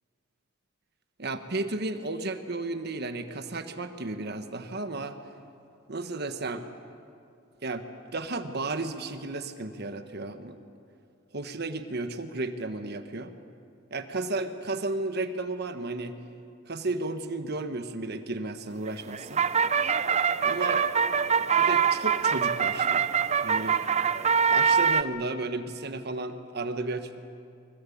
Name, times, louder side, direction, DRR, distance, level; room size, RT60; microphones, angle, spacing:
voice 1, 1.2-5.2 5.9-6.7 7.6-7.9 8.1-10.6 11.3-13.4 13.9-16.2 16.7-19.5 20.4-20.9 21.4-23.1 23.4-23.8 24.5-27.2, right 2 dB, 55° right, 8 dB, 1.4 m, -33 dB
sound 1, 18.9-25.0, right 6 dB, 35° right, 0.6 m, -24 dB
24.0 x 21.5 x 8.6 m, 2.5 s
head